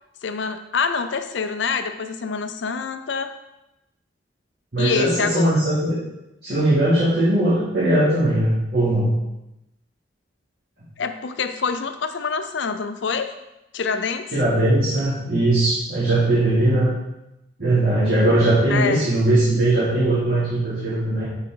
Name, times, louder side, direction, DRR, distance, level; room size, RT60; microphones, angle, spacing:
voice 1, 0.2-3.3 4.8-5.6 11.0-13.3 13.7-14.2 18.7-19.1, left 5 dB, 70° left, 8 dB, 0.5 m, -26 dB
voice 2, 4.7-5.9 6.4-9.1 14.3-16.9 17.6-21.2, right 1 dB, 50° right, -10 dB, 2.6 m, -19 dB
9.5 x 4.4 x 3.9 m, 0.93 s
head